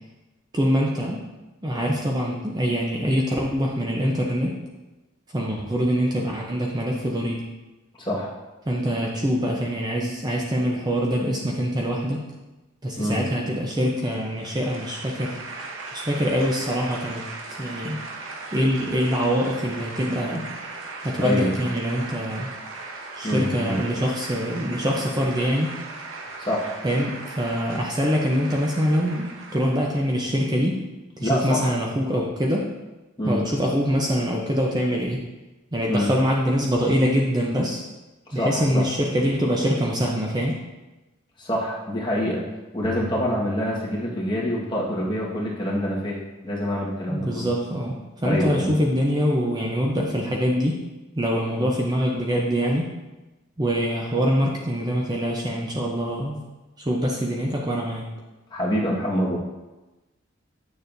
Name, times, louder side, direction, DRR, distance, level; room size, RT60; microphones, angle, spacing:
voice 1, 0.5-1.2 1.6-4.5 5.3-7.4 8.7-12.2 12.8-15.4 15.9-17.2 17.6-18.0 18.5-20.5 21.0-22.5 23.2-25.7 26.8-30.8 31.2-32.6 33.3-35.2 35.7-37.8 38.3-40.6 47.1-50.8 51.1-52.9 53.6-56.4 56.8-58.1, equal, 20° right, -1 dB, 0.6 m, -24 dB
voice 2, 8.0-8.3 13.0-13.2 21.2-21.5 23.2-23.8 26.4-26.7 31.2-31.8 33.2-33.4 35.9-36.1 38.3-38.9 41.4-42.5 42.7-47.5 48.2-48.7 51.6-51.7 58.5-59.4, equal, 25° left, -4 dB, 1.5 m, -26 dB
sound 1, 14.1-30.1, right 3 dB, 90° right, 0.9 m, -38 dB
sound 2, 42.8-44.6, left 3 dB, 40° left, 0.5 m, -40 dB
8.7 x 6.7 x 2.6 m, 1.1 s
head